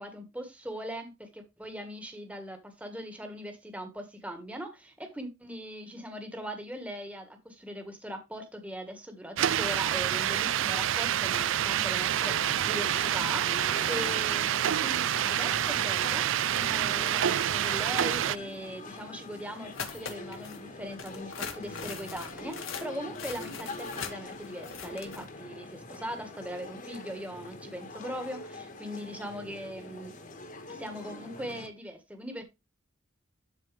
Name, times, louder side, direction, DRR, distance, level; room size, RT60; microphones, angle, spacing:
voice 1, 0.0-16.3 16.7-30.1 30.7-32.4, equal, 5° right, 1.4 m, -40 dB
sound 1, 9.4-18.4, right 10 dB, 70° right, 0.4 m, -27 dB
sound 2, 12.3-31.7, left 2 dB, 40° left, 1.4 m, -44 dB
sound 3, 19.7-20.6 21.0-25.3, left 6 dB, 80° left, 1.9 m, -41 dB
12.5 x 4.3 x 3.3 m
head